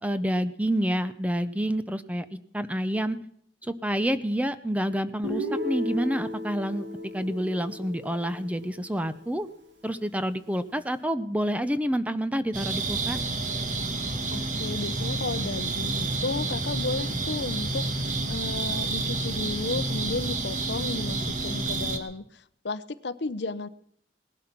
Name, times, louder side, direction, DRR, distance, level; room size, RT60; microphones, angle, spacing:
voice 1, 0.0-2.3 2.5-3.2 3.6-9.5 9.8-13.2, equal, 10° right, 12 dB, 0.7 m, -28 dB
Guitar, 5.2-9.2, left 1 dB, 90° right, 2.9 m, -35 dB
sound 1, 12.5-22.0, right 2 dB, 45° right, 1.6 m, -29 dB
voice 2, 14.3-23.7, left 3 dB, 70° left, 15 dB, 0.7 m, -33 dB
18.5 x 11.5 x 6.0 m, 0.68 s
head